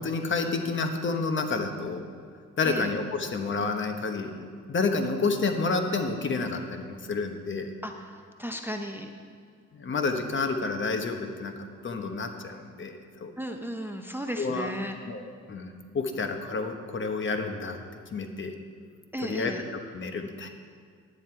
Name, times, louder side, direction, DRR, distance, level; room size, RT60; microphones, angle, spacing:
voice 1, 0.0-2.1 2.6-7.7 9.7-11.5 11.8-13.3 14.4-14.7 15.1-17.8 18.1-18.5 19.2-20.5, left 4 dB, 40° left, 6 dB, 1.1 m, -30 dB
voice 2, 8.4-9.1 13.4-15.0 19.1-19.6, equal, 5° right, 5 dB, 0.7 m, -35 dB
10.5 x 9.3 x 4.5 m, 2.1 s
cardioid pair, 90°, 30 cm